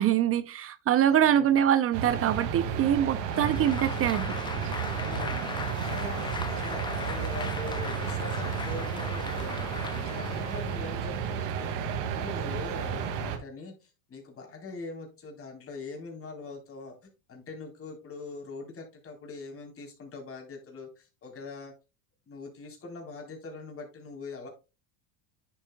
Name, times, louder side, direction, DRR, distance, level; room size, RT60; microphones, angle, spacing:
voice 1, 0.0-4.3, right 10 dB, 30° right, 0.6 m, -24 dB
voice 2, 1.1-1.6 5.0-9.7 10.1-17.0 17.3-21.7 22.2-24.5, left 3 dB, 30° left, 3.6 m, -42 dB
sound 1, 1.9-13.4, right 7 dB, 85° right, 2.2 m, -32 dB
Applause, 3.2-10.9, left 5 dB, 10° left, 0.3 m, -39 dB
10.0 x 7.3 x 2.2 m
supercardioid pair, 125°, 45 cm